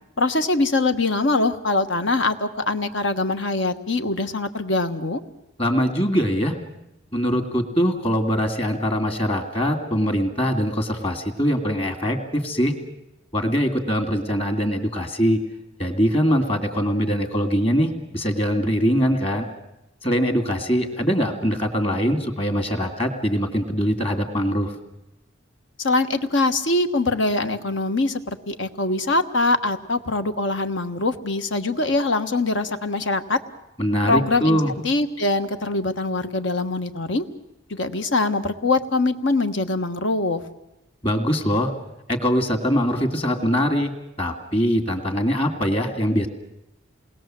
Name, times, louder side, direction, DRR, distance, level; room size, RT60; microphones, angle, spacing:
voice 1, 0.2-5.2 25.8-33.4 34.0-37.2 37.7-40.4, left 2 dB, 65° left, 9 dB, 1.4 m, -23 dB
voice 2, 5.6-6.6 7.1-12.7 13.3-15.4 15.8-19.5 20.0-24.7 33.8-34.7 41.0-41.7 42.1-43.9 44.2-46.3, equal, 30° left, 5 dB, 2.5 m, -22 dB
28.0 x 20.5 x 7.7 m, 0.94 s
head